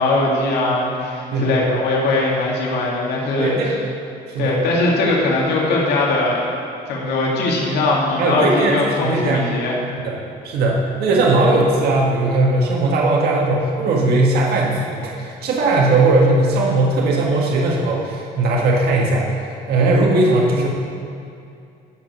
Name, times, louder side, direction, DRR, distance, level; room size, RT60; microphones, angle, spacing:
voice 1, 0.0-3.6 4.4-6.5 6.9-9.8, left 2 dB, 75° left, -3 dB, 2.4 m, -20 dB
voice 2, 1.3-1.8 3.4-3.8 4.3-4.5 8.2-9.5 10.0-10.2 10.4-19.3 19.7-20.7, right 2 dB, 70° right, -2 dB, 1.7 m, -18 dB
14.5 x 5.2 x 6.3 m, 2.5 s
cardioid pair, 110°, 17 cm